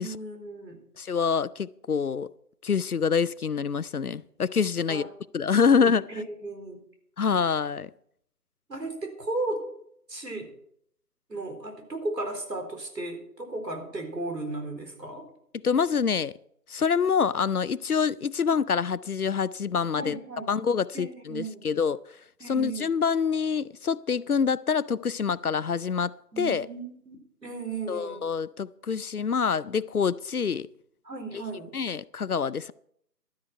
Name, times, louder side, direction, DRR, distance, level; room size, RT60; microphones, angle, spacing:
voice 1, 0.0-0.8 4.9-5.1 5.5-5.9 6.1-6.8 8.7-9.7 10.1-10.5 11.3-15.3 20.0-20.5 20.9-21.7 22.4-22.9 26.3-27.2 27.4-28.3 31.0-31.7, right 2 dB, 80° right, 4.2 m, -35 dB
voice 2, 1.0-2.3 2.6-5.1 5.3-6.1 7.2-7.9 15.6-16.3 16.7-20.2 20.5-22.0 22.5-26.7 27.9-30.7 31.3-31.4 31.7-32.7, left 6 dB, 65° left, 0.5 m, -26 dB
12.5 x 11.0 x 4.5 m
figure-of-eight pair, 170°, 49 cm